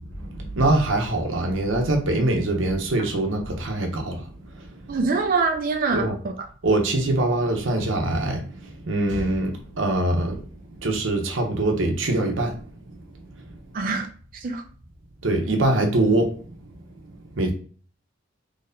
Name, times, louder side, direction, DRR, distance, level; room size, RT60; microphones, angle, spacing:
voice 1, 0.0-4.9 5.9-6.1 6.6-10.5 10.8-12.6 13.4-13.6 15.2-16.5 17.3-17.5, right 2 dB, 85° right, 0.9 m, -24 dB
voice 2, 4.9-6.1 13.7-14.1 14.4-14.6, right 4 dB, 45° right, 0.5 m, -23 dB
4.2 x 3.0 x 2.6 m
head